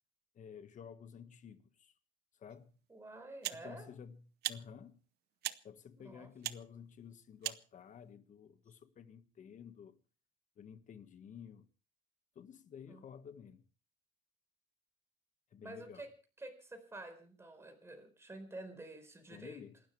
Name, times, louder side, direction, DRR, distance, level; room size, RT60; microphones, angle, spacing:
voice 1, 0.3-2.0 2.3-2.7 3.5-5.0 5.6-10.0 10.6-11.7 12.3-13.6 15.5-16.1 19.3-19.8, left 7 dB, 45° left, 1.6 m, -52 dB
sound 1, 2.5-2.6 3.4-3.7 4.4-4.6 5.4-5.6 6.4-6.6 7.4-7.6, right 14 dB, 75° right, 0.8 m, -39 dB
voice 2, 2.9-3.9 6.0-6.3 12.9-13.0 15.6-16.1 16.4-19.6, right 2 dB, 15° right, 4.3 m, -49 dB
28.5 x 12.5 x 3.3 m
cardioid pair, 110°, 17 cm